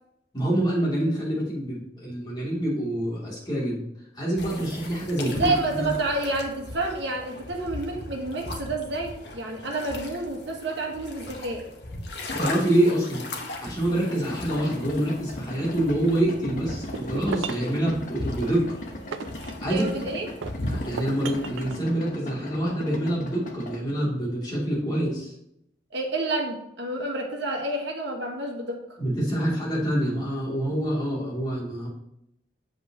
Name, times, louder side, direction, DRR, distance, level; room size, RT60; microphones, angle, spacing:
voice 1, 0.3-3.8 4.1-5.9 12.4-13.2 13.6-18.7 19.6-19.9 20.7-25.3 29.0-31.9, right 1 dB, 20° left, -6 dB, 3.0 m, -26 dB
sound 1, 4.4-21.7, left 2 dB, 60° left, 1.2 m, -38 dB
voice 2, 5.2-11.7 19.6-20.3 25.9-29.0, right 2 dB, 65° right, 1 dB, 1.6 m, -29 dB
Idling, 14.3-23.8, left 1 dB, 40° left, 1.0 m, -39 dB
sound 2, 16.7-17.7 18.4-20.0 20.4-21.8, right 5 dB, 80° right, 0.5 m, -36 dB
7.9 x 7.3 x 3.0 m, 0.78 s
head